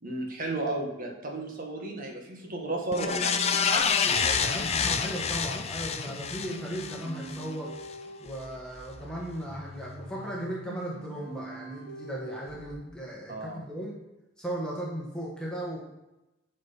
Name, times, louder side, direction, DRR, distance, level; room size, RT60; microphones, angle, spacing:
voice 1, 0.0-5.0 13.3-13.6, right 2 dB, 45° right, 1 dB, 1.5 m, -34 dB
sound 1, 2.9-7.5 7.8-7.9, left 6 dB, 35° left, 0.5 m, -28 dB
sound 2, 4.1-12.7, right 1 dB, 65° right, 2.4 m, -45 dB
voice 2, 4.4-7.7 8.2-14.0 14.4-15.8, right 1 dB, 5° left, -5 dB, 1.4 m, -36 dB
9.1 x 4.5 x 5.4 m, 0.97 s
head